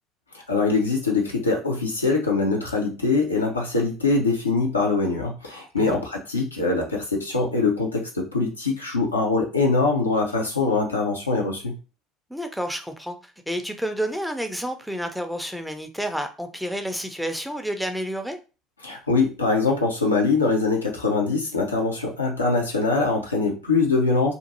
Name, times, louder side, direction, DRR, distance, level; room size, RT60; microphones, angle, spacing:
voice 1, 0.5-11.7 18.8-24.3, left 3 dB, 85° left, 0.6 m, -23 dB
voice 2, 12.3-18.4, equal, ahead, 0.5 m, -30 dB
2.6 x 2.5 x 2.7 m
figure-of-eight pair, 60°, 0 cm